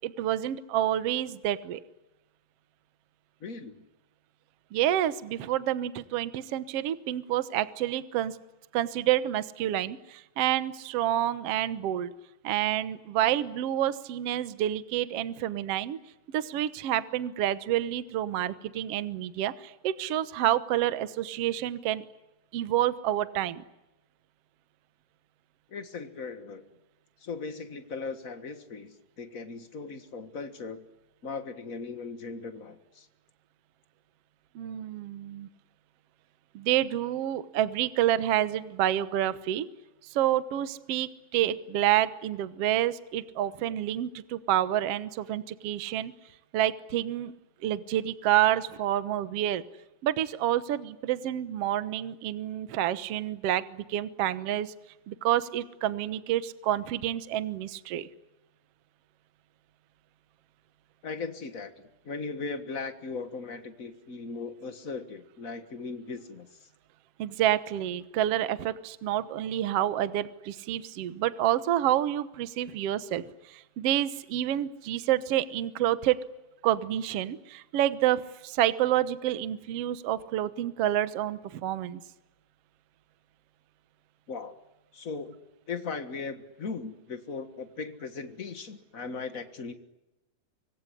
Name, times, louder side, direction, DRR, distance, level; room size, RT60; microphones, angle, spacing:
voice 1, 0.0-1.8 4.7-8.4 8.7-12.1 12.4-16.0 16.3-22.0 22.5-23.6 34.5-35.5 36.5-39.7 40.0-46.1 46.5-47.3 47.6-49.6 50.0-54.7 55.1-58.1 67.2-76.2 76.6-82.0, right 12 dB, 65° right, 13 dB, 1.5 m, -28 dB
voice 2, 3.4-3.8 25.7-26.6 27.2-30.8 31.2-33.1 61.0-61.7 62.0-66.5 84.3-84.5 84.9-85.4 85.7-89.7, left 4 dB, 75° left, 9 dB, 0.7 m, -38 dB
25.5 x 22.5 x 10.0 m, 0.96 s
omnidirectional pair, 4.2 m